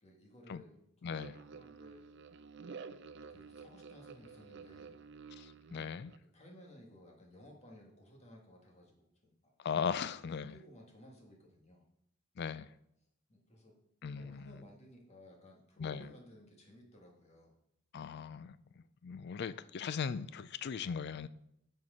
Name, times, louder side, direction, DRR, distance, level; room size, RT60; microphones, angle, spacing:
voice 1, 0.0-2.1 3.3-5.0 6.3-9.5 10.4-11.8 13.3-13.8 14.1-17.6, left 1 dB, 30° left, 1.7 m, -57 dB
voice 2, 1.0-1.4 5.4-6.1 9.6-10.6 12.4-12.7 14.0-14.6 15.8-16.1 17.9-21.3, left 6 dB, 50° left, 0.4 m, -39 dB
sound 1, 1.1-6.2, right 5 dB, 55° right, 0.5 m, -51 dB
9.4 x 4.6 x 4.9 m
head